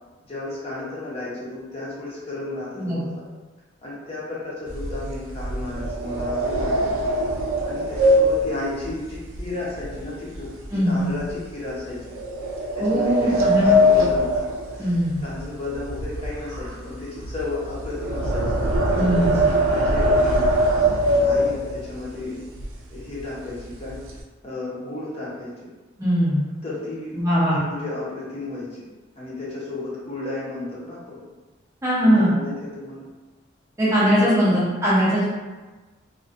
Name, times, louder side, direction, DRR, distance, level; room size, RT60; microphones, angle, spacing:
voice 1, 0.3-3.1 3.8-7.0 7.6-12.1 12.7-14.4 14.7-14.9 15.2-18.6 18.9-20.4 21.2-22.4 22.9-24.0 24.4-25.7 26.6-28.9 29.1-31.2 32.0-33.1 34.0-34.4, left 2 dB, 30° left, -8 dB, 0.6 m, -33 dB
sound 1, 4.7-10.0 10.3-10.7 11.2-11.3 12.1-15.4 15.7-22.0 22.6-22.7 23.0-23.2 23.5-24.2, equal, 85° right, 0.4 m, -22 dB
voice 2, 10.7-11.1 12.8-13.7 14.0-14.1 14.8-15.2 18.9-19.4 26.0-26.4 27.1-27.6 31.8-32.3 33.8-35.3, equal, 15° right, -9 dB, 0.5 m, -20 dB
2.4 x 2.2 x 2.4 m, 1.2 s
head